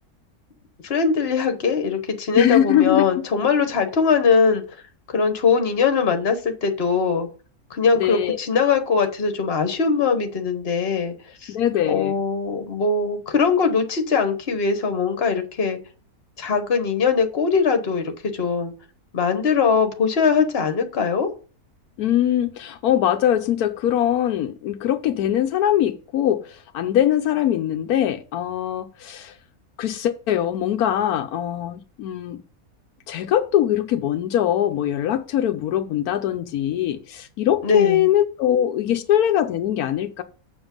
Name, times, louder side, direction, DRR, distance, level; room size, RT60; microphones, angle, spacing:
voice 1, 0.8-4.6 5.1-7.3 7.7-11.1 11.4-11.5 11.9-15.8 16.4-18.7 19.1-21.3 37.6-38.0, left 5 dB, 45° left, 1.4 m, -21 dB
voice 2, 2.3-3.2 8.0-8.4 11.5-12.2 22.0-29.4 29.8-32.4 33.1-40.2, left 11 dB, 80° left, 1.1 m, -22 dB
7.1 x 6.9 x 5.3 m
omnidirectional pair, 1.6 m